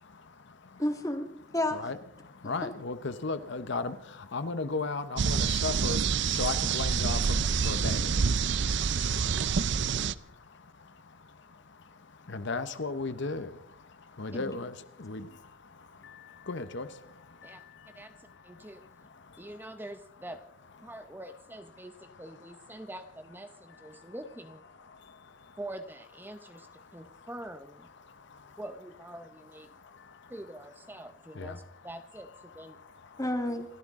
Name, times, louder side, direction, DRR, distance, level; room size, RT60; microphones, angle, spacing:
voice 1, 0.0-0.8 1.7-19.8 20.9-21.1 21.8-22.9 23.5-24.1 24.7-25.6 26.3-27.3 27.9-28.6 29.7-30.4 30.9-31.9 32.2-33.2, left 3 dB, 60° left, 0.9 m, -39 dB
voice 2, 0.8-1.9 2.4-2.7 14.3-14.5 33.2-33.7, left 1 dB, 15° left, 1.8 m, -31 dB
sound 1, 5.2-10.1, right 6 dB, 60° right, 0.5 m, -27 dB
voice 3, 17.9-18.8 19.4-20.4 20.8-24.6 25.6-27.9 28.6-29.7 30.3-32.8 33.2-33.4, right 1 dB, 10° right, 0.8 m, -45 dB
28.5 x 13.0 x 3.7 m
head